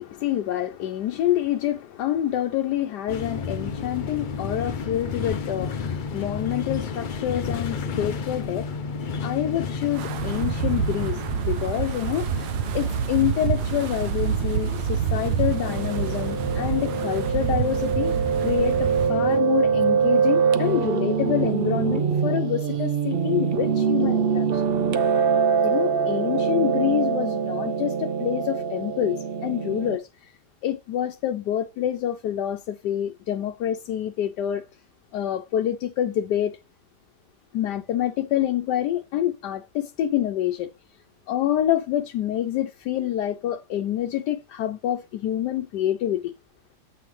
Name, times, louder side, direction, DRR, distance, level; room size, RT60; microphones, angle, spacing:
voice 1, 0.0-8.7 9.2-12.5 12.7-18.2 18.4-24.6 25.6-30.0 30.6-34.6 35.1-36.6 37.5-40.7 41.3-46.3, left 11 dB, 85° left, 1.2 m, -27 dB
sound 1, 3.1-19.4, left 5 dB, 60° left, 0.5 m, -32 dB
Wind, 10.0-19.1, right 9 dB, 80° right, 1.2 m, -28 dB
Piano, 15.5-30.0, right 6 dB, 60° right, 0.6 m, -24 dB
7.8 x 5.3 x 3.1 m
omnidirectional pair, 1.8 m